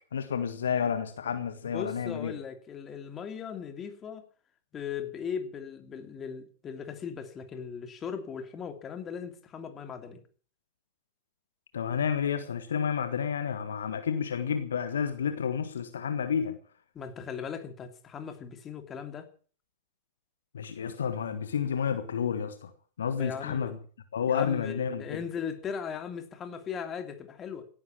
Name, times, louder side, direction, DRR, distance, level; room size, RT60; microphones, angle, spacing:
voice 1, 0.1-2.3 11.7-16.6 20.5-22.7 23.0-23.8 24.1-25.2, left 7 dB, 65° left, 1.5 m, -30 dB
voice 2, 1.6-4.2 4.7-10.2 16.9-19.3 23.2-23.7 24.3-27.7, left 7 dB, 25° left, 2.8 m, -38 dB
17.5 x 11.0 x 7.4 m
figure-of-eight pair, 90°, 0 cm